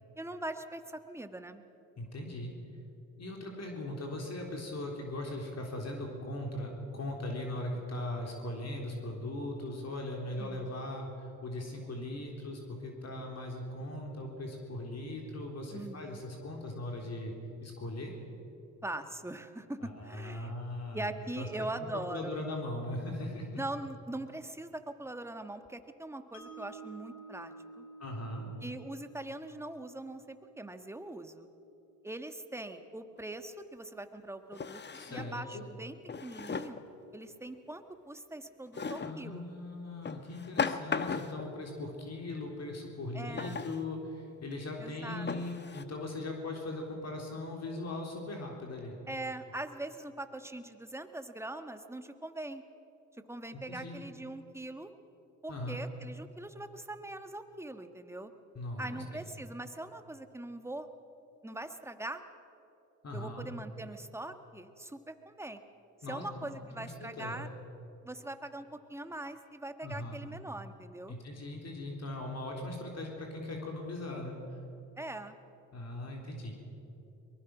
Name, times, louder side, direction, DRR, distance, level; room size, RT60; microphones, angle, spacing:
voice 1, 0.2-1.6 10.4-10.8 15.7-16.2 18.8-20.5 20.9-22.4 23.6-27.9 28.6-31.5 32.0-34.8 35.1-35.9 36.2-36.8 37.1-39.4 43.1-43.6 44.8-45.3 49.1-52.6 53.3-54.9 55.4-58.3 58.8-60.9 61.4-62.2 63.1-65.6 66.1-67.5 68.0-71.1 75.0-75.4, right 2 dB, 5° right, 8 dB, 1.4 m, -42 dB
voice 2, 2.0-2.5 3.2-17.3 17.6-18.1 19.8-21.1 21.4-21.5 22.1-23.6 28.0-28.5 34.9-35.6 39.0-49.0 53.5-54.0 55.5-55.8 58.5-59.2 63.0-63.5 66.0-67.5 69.8-70.2 71.1-74.4 75.7-76.6, left 1 dB, 45° left, 0 dB, 3.7 m, -39 dB
Mallet percussion, 26.3-32.5, right 3 dB, 70° left, 3.8 m, -53 dB
Drawer open or close, 33.2-33.3 34.5-35.4 36.1-36.9 38.7-39.2 40.0-41.5 43.4-43.8 44.5-44.6 45.3-45.8, left 5 dB, 30° left, 1.1 m, -36 dB
23.0 x 20.0 x 6.1 m, 3.0 s
supercardioid pair, 70°, 36 cm